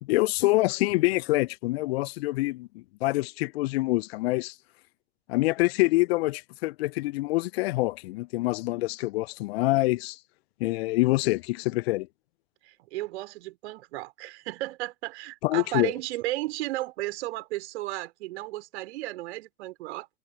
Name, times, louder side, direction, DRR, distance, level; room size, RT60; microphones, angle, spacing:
voice 1, 0.0-4.5 5.3-10.2 10.6-12.1 15.4-15.9, left 20 dB, 50° left, 1.1 m, -26 dB
voice 2, 12.6-20.1, right 18 dB, 55° right, 4.5 m, -34 dB
figure-of-eight pair, 85°, 40 cm